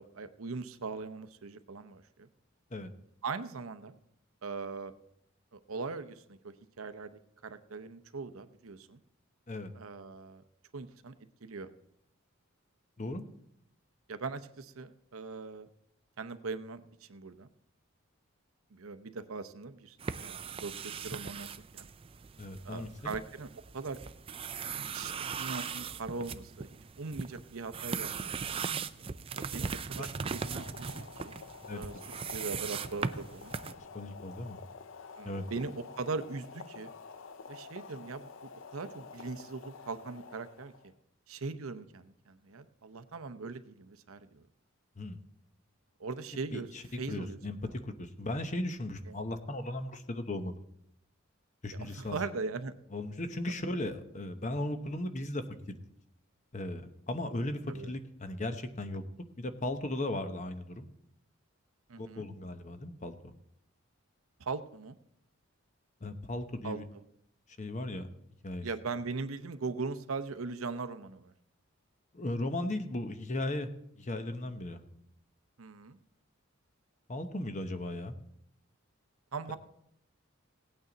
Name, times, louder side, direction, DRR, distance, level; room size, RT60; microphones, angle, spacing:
voice 1, 0.0-2.3 3.2-4.0 4.4-4.9 5.5-9.0 9.7-10.4 10.7-11.1 11.4-11.7 14.1-15.7 16.2-17.5 18.7-21.5 21.7-21.9 22.6-24.0 24.8-26.7 27.0-28.5 29.3-31.4 31.7-31.9 32.3-33.5 35.2-36.9 37.5-38.3 38.7-40.7 41.3-44.5 46.0-46.7 47.0-47.7 49.1-49.2 51.7-52.7 57.7-57.9 61.9-62.3 64.4-65.0 66.6-67.0 68.6-71.3 75.6-76.0 79.3-79.6, right 4 dB, 85° right, 11 dB, 0.8 m, -40 dB
sound 1, 20.0-33.7, right 5 dB, 25° right, 0.4 m, -39 dB
voice 2, 22.4-22.9 29.6-29.7 30.0-30.1 31.7-31.8 33.8-34.6 35.2-35.4 45.0-45.2 46.5-46.8 47.1-47.6 47.8-50.6 51.6-52.2 52.9-55.8 56.5-59.0 59.4-60.9 62.0-63.1 66.0-66.8 67.6-68.1 68.4-68.7 72.1-73.7 74.0-74.8 77.1-78.1, left 1 dB, 35° left, 8 dB, 0.9 m, -36 dB
Boiling, 29.9-40.9, left 5 dB, 65° left, 0.5 m, -49 dB
17.0 x 8.9 x 4.0 m, 0.76 s
head